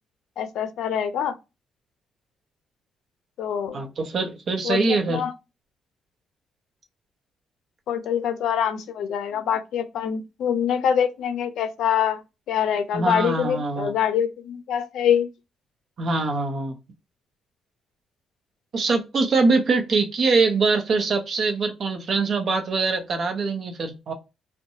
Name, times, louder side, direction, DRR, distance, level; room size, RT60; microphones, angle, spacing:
voice 1, 0.4-1.3 3.4-3.8 4.6-5.3 7.9-12.2 12.5-15.3, left 8 dB, 75° left, 0.4 m, -25 dB
voice 2, 3.7-5.2 12.9-13.9 16.0-16.7 18.7-24.1, right 3 dB, 55° right, 0.7 m, -23 dB
2.7 x 2.2 x 2.6 m
cardioid pair, 90°, 0 cm